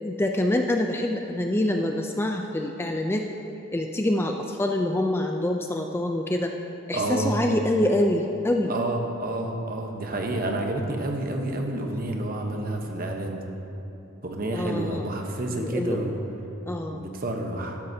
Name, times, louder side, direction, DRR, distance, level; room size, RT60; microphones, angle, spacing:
voice 1, 0.0-3.2 3.7-6.5 6.9-8.7 14.5-15.1 15.6-16.0 16.7-17.0, left 1 dB, 10° left, 3 dB, 0.4 m, -25 dB
voice 2, 6.9-7.4 8.7-13.4 14.2-16.2 16.9-17.8, right 1 dB, 45° right, 2 dB, 1.0 m, -29 dB
13.0 x 12.0 x 2.7 m, 3.0 s
head